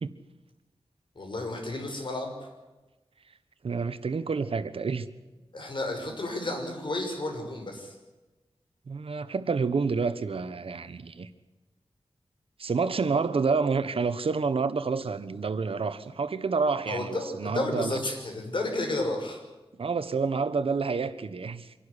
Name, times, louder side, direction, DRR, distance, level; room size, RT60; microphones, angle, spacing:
voice 1, 1.2-2.3 5.5-7.9 16.9-19.4, left 2 dB, 55° left, 6.0 m, -32 dB
voice 2, 3.6-5.1 8.9-11.3 12.6-18.0 19.8-21.7, right 4 dB, 70° right, 1.3 m, -28 dB
25.5 x 11.5 x 10.0 m
wide cardioid pair, 95°, 10 cm